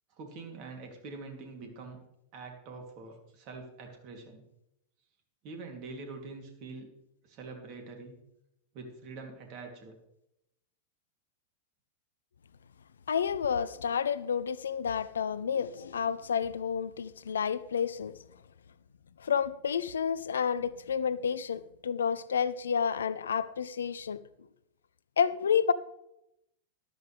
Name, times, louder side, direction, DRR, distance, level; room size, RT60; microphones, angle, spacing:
voice 1, 0.1-2.0 2.3-4.4 5.4-6.9 7.2-8.2 8.7-9.9, right 3 dB, 40° right, 2.9 m, -45 dB
voice 2, 13.1-18.1 19.2-24.2 25.2-25.7, left 7 dB, 70° left, 0.5 m, -30 dB
13.0 x 12.5 x 3.4 m
figure-of-eight pair, 90°, 0 cm